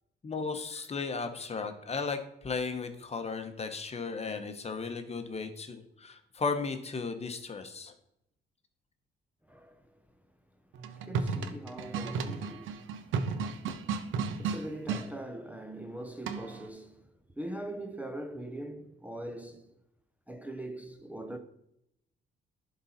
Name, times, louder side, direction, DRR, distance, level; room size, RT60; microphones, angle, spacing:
voice 1, 0.2-7.9, left 4 dB, 30° left, 1.0 m, -35 dB
sound 1, 10.7-15.1 16.3-16.7, right 5 dB, 80° right, 0.7 m, -33 dB
voice 2, 11.0-12.8 13.2-13.6 14.4-17.1 17.4-19.6 20.3-21.4, right 1 dB, 5° right, 0.7 m, -41 dB
11.0 x 4.0 x 4.2 m
cardioid pair, 90°, 20 cm